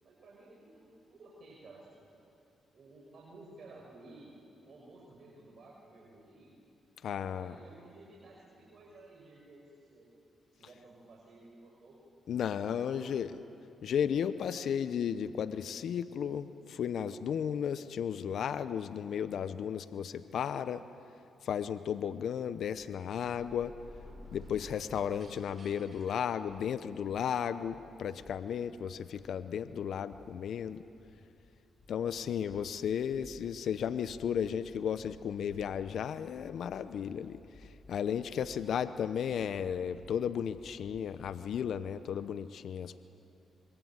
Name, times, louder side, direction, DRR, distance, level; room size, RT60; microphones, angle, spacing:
voice 1, 0.0-2.2 2.7-4.3 4.6-6.5 7.3-10.1 10.5-12.0 12.5-13.4, right 2 dB, 60° right, -3 dB, 6.1 m, -55 dB
voice 2, 7.0-7.6 12.3-13.4 13.8-20.8 21.4-23.7 24.3-30.8 31.9-43.0, left 8 dB, 70° left, 13 dB, 0.8 m, -34 dB
sound 1, 23.1-27.1, equal, 40° right, 7.1 m, -52 dB
sound 2, 26.8-41.6, left 2 dB, 55° left, 4.4 m, -60 dB
26.0 x 22.5 x 9.0 m, 2.6 s
supercardioid pair, 55°, 0 cm